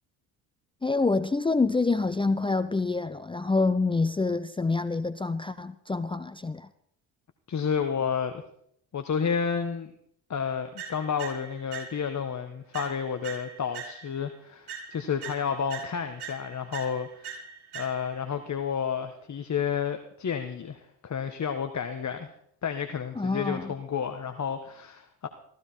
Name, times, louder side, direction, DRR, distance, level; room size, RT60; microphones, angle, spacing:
voice 1, 0.8-6.7 23.2-23.7, left 3 dB, 10° left, 0.7 m, -27 dB
voice 2, 7.5-8.4 8.9-9.9 10.3-17.3 17.7-22.3 22.6-25.3, left 7 dB, 35° left, 1.5 m, -31 dB
sound 1, 10.8-12.3 12.7-14.3 14.7-18.3, right 6 dB, 55° right, 6.6 m, -42 dB
15.5 x 15.0 x 4.5 m
hypercardioid pair, 60°, 46 cm